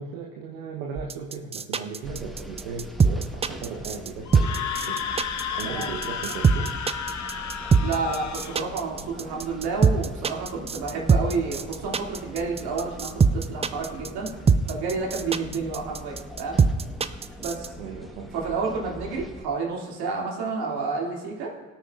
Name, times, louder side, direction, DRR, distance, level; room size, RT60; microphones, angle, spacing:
voice 1, 0.0-5.0 5.6-6.7 17.8-18.3, right 5 dB, 80° right, 0 dB, 1.0 m, -37 dB
sound 1, 1.0-17.7, right 5 dB, 15° right, 0.4 m, -22 dB
sound 2, 2.0-19.4, equal, ahead, 1.2 m, -42 dB
Screaming, 4.3-8.6, left 7 dB, 45° left, 1.0 m, -32 dB
voice 2, 7.8-14.3 14.7-16.6 17.4-17.7 18.3-21.5, right 4 dB, 60° right, -2 dB, 2.5 m, -30 dB
17.0 x 8.8 x 2.4 m, 1.3 s
hypercardioid pair, 50°, 42 cm